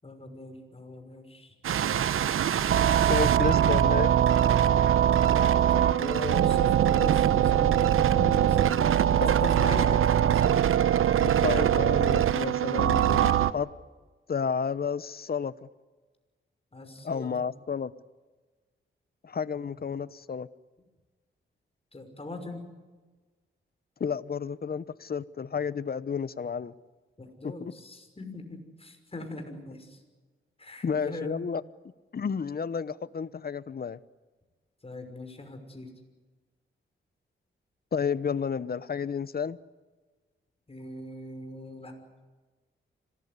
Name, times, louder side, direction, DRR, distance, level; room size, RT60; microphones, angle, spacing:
voice 1, 0.0-2.7 5.2-10.4 16.7-17.5 19.6-19.7 21.9-22.6 27.2-30.0 30.6-31.4 34.8-35.9 40.7-41.9, left 2 dB, 30° left, 6 dB, 6.0 m, -40 dB
sound 1, 1.6-13.5, right 10 dB, 90° right, 0.9 m, -22 dB
voice 2, 3.1-4.1 9.2-9.3 11.2-13.7 14.3-15.7 17.0-17.9 19.2-20.5 24.0-26.7 27.4-27.7 30.8-31.6 32.1-34.0 37.9-39.6, left 6 dB, 50° left, 17 dB, 1.0 m, -31 dB
25.5 x 19.0 x 9.8 m, 1.3 s
cardioid pair, 80°, 21 cm